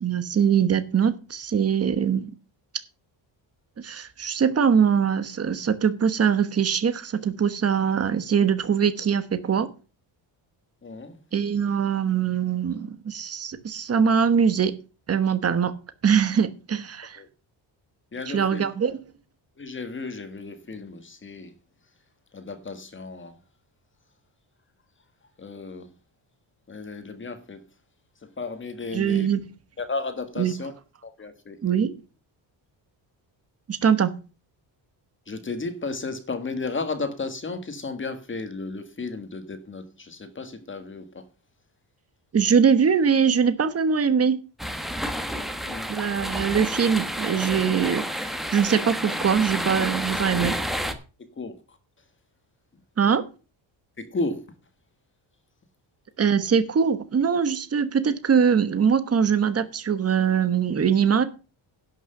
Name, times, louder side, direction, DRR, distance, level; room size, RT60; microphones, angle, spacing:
voice 1, 0.0-2.3 3.8-9.7 11.3-14.8 15.1-15.7 16.0-17.2 18.3-19.0 28.9-29.4 30.4-30.5 31.6-32.0 33.7-34.1 42.3-44.4 45.9-50.5 53.0-53.2 56.2-61.2, right 7 dB, 30° right, 1.2 m, -22 dB
voice 2, 10.8-11.2 17.1-17.3 18.1-18.6 19.6-21.5 22.3-23.4 25.4-25.9 26.7-27.7 28.2-29.3 29.8-30.7 31.0-31.6 35.2-41.3 45.6-45.9 51.2-51.8 52.7-52.8 54.0-54.6, left 3 dB, 25° left, 1.6 m, -34 dB
sound 1, 44.6-50.9, equal, ahead, 1.1 m, -30 dB
11.5 x 6.2 x 6.7 m
cardioid pair, 155°, 47 cm